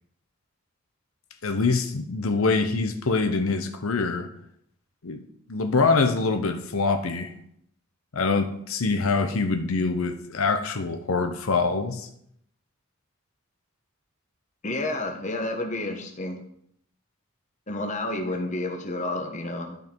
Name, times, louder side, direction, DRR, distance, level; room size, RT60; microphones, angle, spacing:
voice 1, 1.4-4.3 5.0-5.2 5.5-7.3 8.1-12.1, left 4 dB, 80° left, 0.8 m, -24 dB
voice 2, 14.6-16.4 17.7-19.8, left 2 dB, 35° left, 1.2 m, -30 dB
12.0 x 5.3 x 4.6 m
head